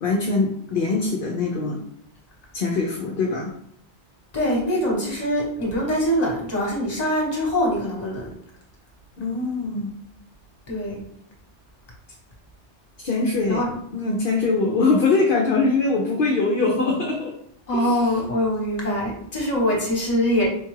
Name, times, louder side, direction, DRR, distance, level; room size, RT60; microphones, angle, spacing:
voice 1, 0.0-1.8 2.5-3.5 9.2-9.9 13.0-13.6 13.9-17.3 17.7-18.1, left 3 dB, 60° left, 0 dB, 0.7 m, -22 dB
voice 2, 4.3-8.3 10.7-11.0 13.4-13.7 17.7-20.5, equal, 35° left, -2 dB, 1.2 m, -23 dB
4.5 x 2.3 x 3.1 m, 0.70 s
omnidirectional pair, 1.2 m